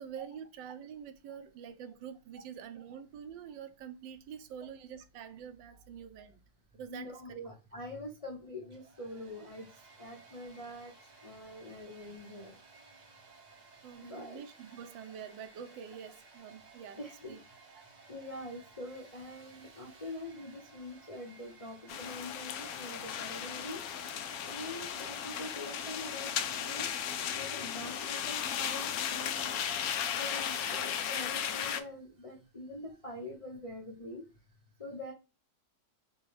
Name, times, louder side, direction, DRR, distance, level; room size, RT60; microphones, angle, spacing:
voice 1, 0.0-6.4 6.7-7.2 13.8-17.0 17.3-17.4, right 8 dB, 80° right, 1.3 m, -46 dB
voice 2, 6.9-12.6 14.0-14.4 17.0-17.4 18.1-23.8 24.5-26.9 27.3-29.8 30.1-34.3 34.8-35.1, left 1 dB, 40° left, 0.4 m, -44 dB
Domestic sounds home sounds, 8.6-28.2, right 3 dB, 45° right, 0.5 m, -58 dB
sound 1, 21.9-31.8, left 9 dB, 75° left, 0.8 m, -36 dB
6.0 x 2.2 x 3.2 m
omnidirectional pair, 2.1 m